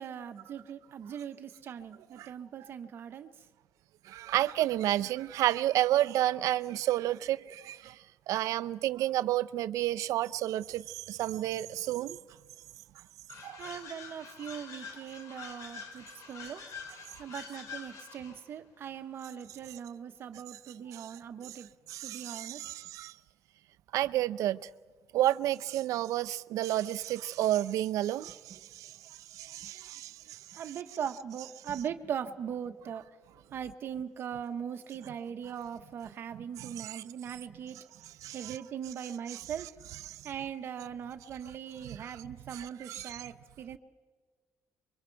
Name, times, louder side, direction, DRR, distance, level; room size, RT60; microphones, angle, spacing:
voice 1, 0.0-3.3 13.6-16.6 17.2-21.7 22.0-22.7 30.5-33.0 33.5-37.8 38.3-39.7 40.2-43.8, right 8 dB, 45° right, 1.0 m, -40 dB
voice 2, 4.1-8.0 8.3-12.2 13.4-13.6 20.9-21.1 21.9-23.1 23.9-24.7 25.1-28.9 29.3-30.4 36.6-37.0 38.2-38.6 39.3-39.4 40.1-40.2 41.8-42.0 42.5-43.3, right 14 dB, 80° right, 0.5 m, -31 dB
sound 1, 13.3-18.5, left 5 dB, 70° left, 2.6 m, -46 dB
27.5 x 23.5 x 4.6 m
cardioid pair, 175°, 6 cm